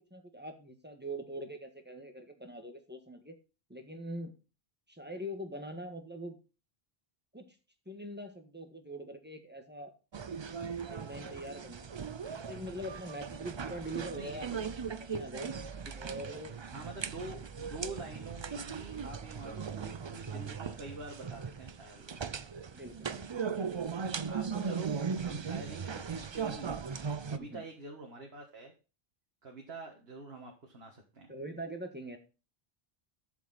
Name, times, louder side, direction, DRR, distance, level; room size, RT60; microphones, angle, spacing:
voice 1, 0.0-3.3 3.7-4.3 4.9-6.4 7.3-7.6 7.8-9.9 10.9-11.9 12.3-15.5 15.9-16.6 22.7-23.1 27.3-27.6 31.3-32.2, right 1 dB, 10° right, 5 dB, 1.5 m, -43 dB
sound 1, 10.1-27.4, right 6 dB, 40° right, 0.4 m, -38 dB
voice 2, 14.2-14.6 16.0-16.1 16.7-22.5 24.3-25.0 25.2-26.8 27.3-28.7 29.4-31.3, right 2 dB, 75° right, 1 dB, 1.9 m, -46 dB
11.5 x 7.1 x 4.1 m, 0.33 s
omnidirectional pair, 1.0 m